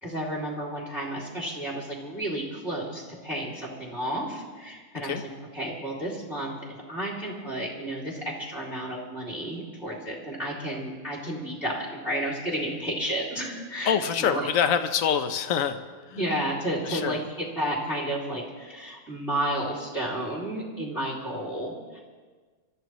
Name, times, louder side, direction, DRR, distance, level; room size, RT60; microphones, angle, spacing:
voice 1, 0.0-5.2 5.5-6.5 6.9-14.5 16.1-22.0, right 1 dB, ahead, -3 dB, 2.6 m, -32 dB
voice 2, 13.9-15.8 16.1-16.2 16.8-17.2, left 7 dB, 60° left, 9 dB, 0.9 m, -25 dB
28.0 x 14.0 x 3.1 m, 1.4 s
omnidirectional pair, 2.3 m